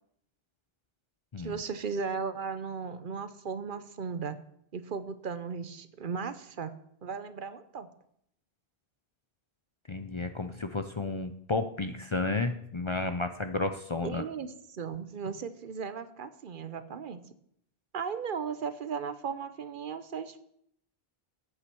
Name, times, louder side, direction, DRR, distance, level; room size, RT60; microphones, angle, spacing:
voice 1, 1.4-4.4 4.7-6.7 7.0-7.9 14.0-17.2 17.9-20.4, right 6 dB, 60° right, 12 dB, 0.8 m, -36 dB
voice 2, 9.9-14.2, left 3 dB, 35° left, 8 dB, 0.5 m, -32 dB
8.4 x 8.2 x 6.9 m, 0.72 s
omnidirectional pair, 1.0 m